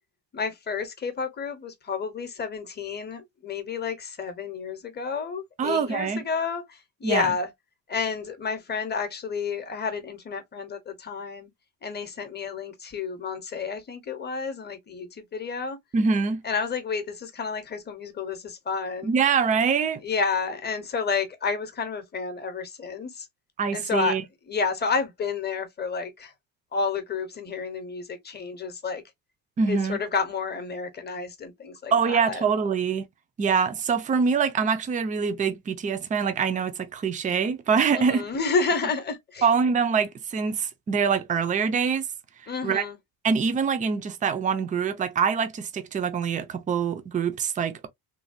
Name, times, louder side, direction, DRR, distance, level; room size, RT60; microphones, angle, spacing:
voice 1, 0.3-7.5 7.9-11.5 11.8-15.8 16.4-19.1 20.0-23.3 23.7-24.2 24.5-26.3 26.7-29.0 29.7-32.4 37.9-39.5 42.5-43.0, left 5 dB, 25° left, 0.7 m, -30 dB
voice 2, 5.6-6.2 7.0-7.3 15.9-16.4 19.0-20.0 23.6-24.2 29.6-30.0 31.9-33.1 33.4-38.2 39.4-42.0 42.6-42.8 43.2-47.9, right 6 dB, 20° right, 0.3 m, -24 dB
3.2 x 2.2 x 2.6 m
cardioid pair, 140°, 40 cm